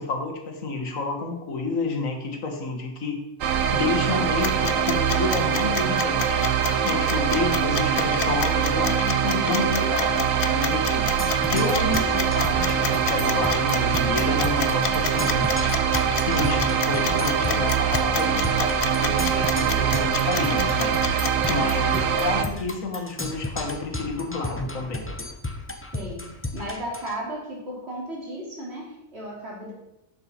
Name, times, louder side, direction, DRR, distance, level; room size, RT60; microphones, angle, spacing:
voice 1, 0.0-3.2 3.7-6.5 6.8-11.1 11.5-15.5 16.1-20.9 21.5-25.1, left 3 dB, 85° left, 3 dB, 1.9 m, -29 dB
sound 1, 3.4-22.4, right 7 dB, 85° right, 1.2 m, -23 dB
sound 2, 4.4-21.5, left 8 dB, 55° left, 0.7 m, -30 dB
Percussion, 11.2-27.2, left 2 dB, 15° left, 0.6 m, -34 dB
voice 2, 19.6-20.0 21.9-22.1 25.9-26.3 26.5-29.7, equal, 55° right, -4 dB, 3.2 m, -35 dB
11.0 x 6.5 x 4.4 m, 0.92 s
omnidirectional pair, 1.3 m